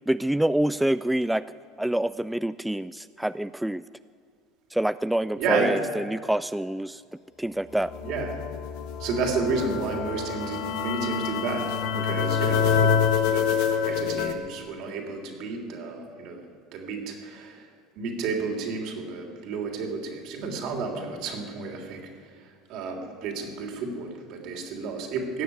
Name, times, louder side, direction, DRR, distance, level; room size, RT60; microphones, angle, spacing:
voice 1, 0.1-1.4 1.8-3.8 4.7-7.0 7.4-7.9 12.1-12.2, right 1 dB, 5° right, 15 dB, 0.3 m, -26 dB
voice 2, 5.4-5.8 8.0-8.4 9.0-11.8 12.0-13.0 13.2-13.5 13.8-16.4 16.7-17.7 18.0-22.1 22.7-25.4, right 4 dB, 65° right, 2 dB, 3.3 m, -31 dB
sound 1, 7.8-14.3, left 7 dB, 70° left, 1.4 m, -26 dB
17.0 x 7.1 x 9.7 m, 2.3 s
hypercardioid pair, 85°, 0 cm